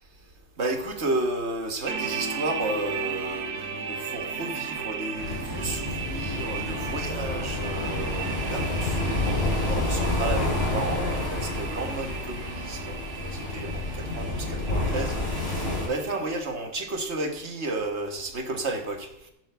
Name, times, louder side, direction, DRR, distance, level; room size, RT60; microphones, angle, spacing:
voice 1, 0.6-19.1, right 2 dB, 45° right, 5 dB, 1.7 m, -32 dB
sound 1, 1.9-16.4, right 5 dB, 75° right, 1.6 m, -36 dB
sound 2, 5.1-15.9, left 2 dB, 70° left, 6.8 m, -29 dB
15.0 x 6.0 x 6.8 m, 0.83 s
omnidirectional pair, 1.7 m